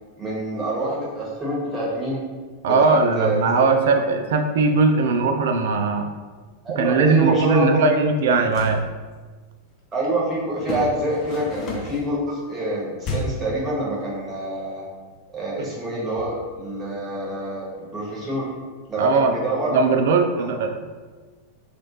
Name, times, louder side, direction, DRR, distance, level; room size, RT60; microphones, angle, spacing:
voice 1, 0.2-2.2 2.6-3.4 6.6-8.0 9.9-14.8 15.3-18.5 18.9-20.0 20.4-20.5, right 1 dB, 15° right, -6 dB, 1.4 m, -26 dB
voice 2, 2.6-6.1 6.7-8.8 15.6-15.7 19.0-19.4 19.7-20.7, right 4 dB, 60° right, 5 dB, 0.4 m, -19 dB
sound 1, 8.5-8.8 10.6-12.1 13.0-13.5, left 2 dB, 35° left, 0.7 m, -31 dB
3.1 x 2.5 x 4.3 m, 1.4 s
figure-of-eight pair, 90°, 0 cm